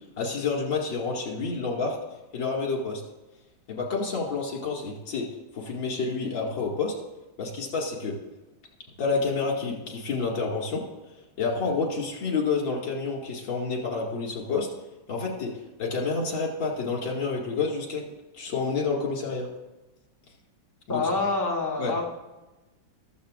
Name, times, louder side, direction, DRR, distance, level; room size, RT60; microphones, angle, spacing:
voice 1, 0.2-2.0 2.3-3.0 3.7-5.3 5.5-6.9 7.4-8.1 9.0-10.8 11.4-14.7 15.1-15.5 15.8-18.0 18.4-19.5 20.9-21.1 21.8-22.0, left 4 dB, 70° left, -1 dB, 2.8 m, -29 dB
voice 2, 20.9-22.0, left 3 dB, 10° left, -1 dB, 1.5 m, -26 dB
14.5 x 13.5 x 2.5 m, 1.1 s
omnidirectional pair, 2.2 m